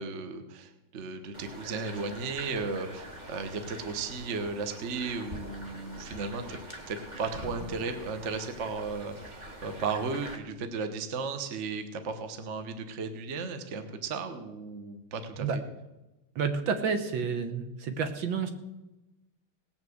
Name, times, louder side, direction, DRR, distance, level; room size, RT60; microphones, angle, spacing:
voice 1, 0.0-6.6 6.9-15.6, right 4 dB, 40° right, 8 dB, 1.2 m, -35 dB
sound 1, 1.3-10.4, equal, 20° right, 1.7 m, -44 dB
voice 2, 16.4-18.5, right 5 dB, 65° right, 7 dB, 1.9 m, -30 dB
18.0 x 6.1 x 7.8 m, 1.0 s
omnidirectional pair, 2.3 m